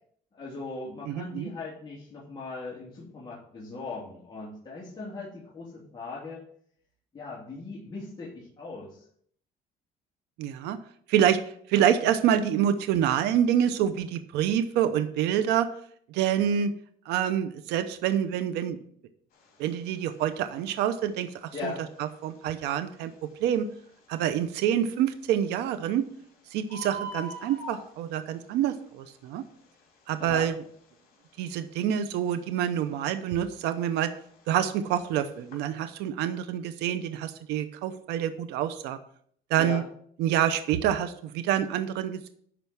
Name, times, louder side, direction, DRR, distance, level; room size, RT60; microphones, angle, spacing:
voice 1, 0.3-6.4 7.1-9.1 21.5-21.9 30.2-30.5 39.6-39.8, left 3 dB, 25° left, -6 dB, 2.7 m, -39 dB
voice 2, 1.1-1.5 10.4-10.8 11.1-11.4 11.7-15.7 16.1-16.7 17.1-18.8 19.6-21.7 22.2-23.6 24.1-26.0 26.5-29.4 30.1-30.5 31.4-34.1 34.5-39.0 39.5-39.8 40.2-42.3, right 10 dB, 90° right, 10 dB, 0.8 m, -27 dB
Bird, 19.3-35.7, right 2 dB, 60° left, 3.5 m, -47 dB
11.0 x 4.5 x 6.2 m, 0.62 s
cardioid pair, 110°, 17 cm